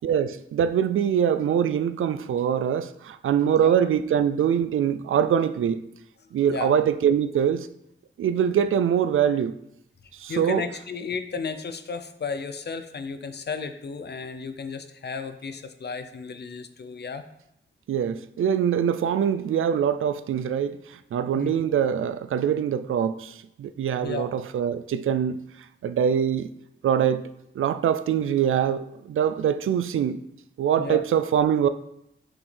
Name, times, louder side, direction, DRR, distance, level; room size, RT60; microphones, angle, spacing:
voice 1, 0.0-5.8 6.3-7.7 8.2-9.5 10.1-10.6 17.9-25.4 25.8-26.5 26.8-30.2 30.6-31.7, right 8 dB, 90° right, 0.4 m, -23 dB
voice 2, 3.4-3.8 6.3-6.8 10.3-17.2 21.3-21.6 24.0-24.3 30.8-31.0, left 5 dB, 55° left, 0.6 m, -34 dB
6.2 x 6.0 x 3.4 m
wide cardioid pair, 85°, 20 cm